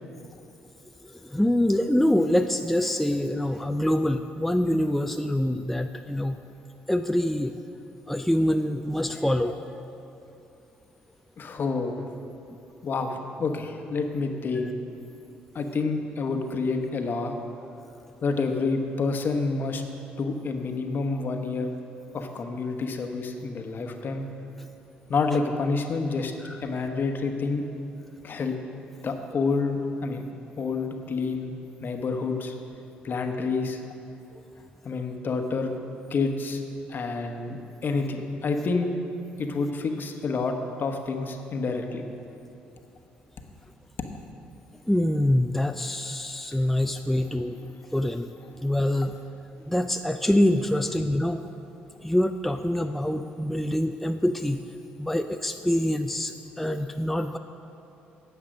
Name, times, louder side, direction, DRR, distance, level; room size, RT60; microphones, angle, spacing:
voice 1, 1.2-6.4 6.9-7.5 8.1-9.6 26.4-26.5 44.9-47.6 47.9-48.3 48.6-49.1 49.7-51.4 52.0-54.6 55.0-57.4, left 1 dB, 5° left, 6 dB, 0.4 m, -25 dB
voice 2, 11.4-12.0 12.8-14.7 15.5-17.3 18.2-19.8 20.2-21.7 22.1-24.3 25.1-26.3 26.6-27.6 28.2-28.6 29.0-30.2 30.6-31.5 31.8-32.5 33.0-33.8 34.8-35.7 36.1-36.6 36.9-37.6 37.8-38.9 39.4-42.0, left 4 dB, 50° left, 5 dB, 1.1 m, -28 dB
10.0 x 7.3 x 6.2 m, 2.8 s
supercardioid pair, 60°, 4 cm